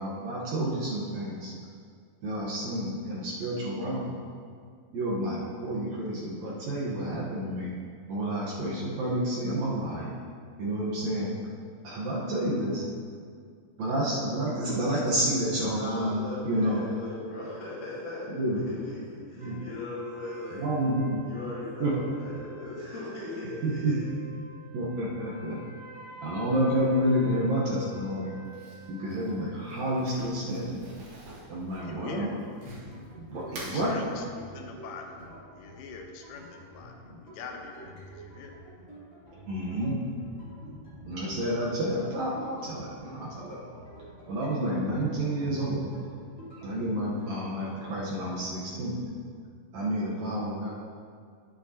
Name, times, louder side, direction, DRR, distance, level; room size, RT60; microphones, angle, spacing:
voice 1, 0.0-1.5 2.2-4.1 4.9-7.7 8.1-10.2 10.6-11.3 11.8-12.9 13.8-16.2 16.4-16.8 18.3-18.6 19.3-19.6 20.5-21.2 21.8-21.9 23.4-23.9 24.7-25.6 26.2-28.3 28.9-30.8 31.5-32.3 33.2-34.0 37.1-37.2 39.5-40.0 41.0-43.8 44.3-46.2 46.6-49.0 49.7-50.7, right 1 dB, 80° right, -6 dB, 1.6 m, -30 dB
voice 2, 15.6-20.6 21.3-24.0, left 2 dB, 55° left, -12 dB, 3.7 m, -39 dB
sound 1, 19.4-29.3, right 2 dB, 30° right, 1.7 m, -49 dB
Crumpling crinkling, 28.5-33.1 33.4-33.8, right 2 dB, 65° right, 3.3 m, -47 dB
voice 3, 31.8-32.3 33.7-35.2 35.5-38.5, left 4 dB, 80° left, 3 dB, 2.6 m, -43 dB
sound 2, 32.6-47.4, right 1 dB, 25° left, 1.3 m, -47 dB
10.5 x 8.6 x 2.8 m, 2.1 s
omnidirectional pair, 4.8 m